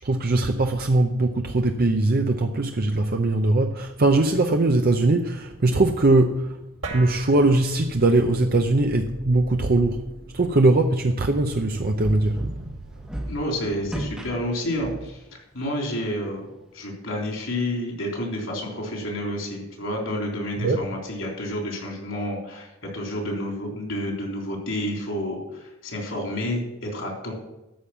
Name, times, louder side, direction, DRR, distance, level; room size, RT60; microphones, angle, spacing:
voice 1, 0.0-6.6 6.9-10.1 10.3-12.6 20.6-20.8, right 2 dB, 45° right, 4 dB, 0.6 m, -21 dB
sound 1, 6.8-13.6, right 1 dB, 65° right, 2.4 m, -40 dB
sound 2, 11.7-15.2, right 1 dB, 5° right, 1.1 m, -35 dB
voice 2, 13.2-15.2 15.5-16.5 16.7-27.3, left 1 dB, 65° left, 0 dB, 3.6 m, -29 dB
13.0 x 5.3 x 7.2 m, 0.94 s
head